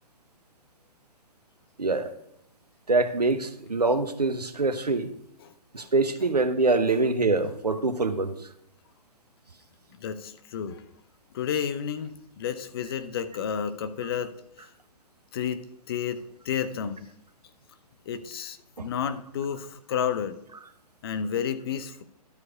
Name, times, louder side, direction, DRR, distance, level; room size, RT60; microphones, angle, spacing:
voice 1, 1.8-2.1 2.9-5.1 5.7-8.3 18.8-18.9, right 3 dB, 75° right, 0.9 m, -24 dB
voice 2, 5.4-5.9 10.0-10.8 11.3-14.7 15.3-15.6 15.9-17.1 18.1-20.4 21.0-22.0, left 8 dB, 35° left, 0.6 m, -31 dB
12.5 x 4.7 x 5.0 m
figure-of-eight pair, 120°, 20 cm